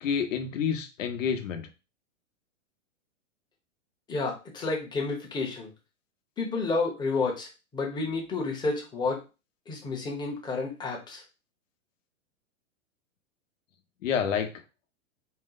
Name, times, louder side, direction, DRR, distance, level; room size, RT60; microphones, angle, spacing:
voice 1, 0.0-1.7 14.0-14.5, left 7 dB, 70° left, 7 dB, 0.9 m, -28 dB
voice 2, 4.1-5.7 6.4-9.2 9.7-11.2, left 3 dB, 10° left, 0 dB, 0.8 m, -30 dB
4.3 x 2.1 x 4.0 m, 0.29 s
hypercardioid pair, 135°, 40 cm